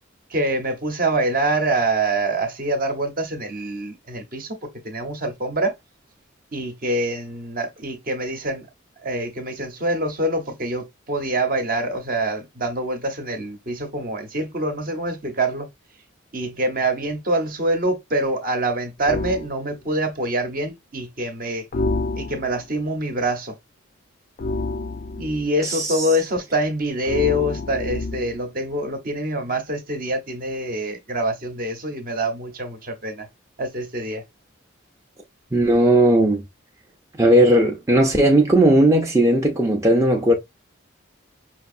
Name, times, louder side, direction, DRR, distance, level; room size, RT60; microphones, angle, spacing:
voice 1, 0.3-5.7 6.5-8.7 9.0-15.7 16.3-21.7 22.1-23.6 25.2-33.3 33.6-34.2, right 1 dB, 45° right, 0.9 m, -25 dB
sound 1, 19.1-19.5 21.7-22.7 24.4-25.5 27.0-28.4, left 2 dB, 40° left, 0.4 m, -28 dB
voice 2, 25.6-26.0 35.5-36.4 37.2-40.3, right 1 dB, 15° right, 0.5 m, -17 dB
5.6 x 2.7 x 2.5 m
head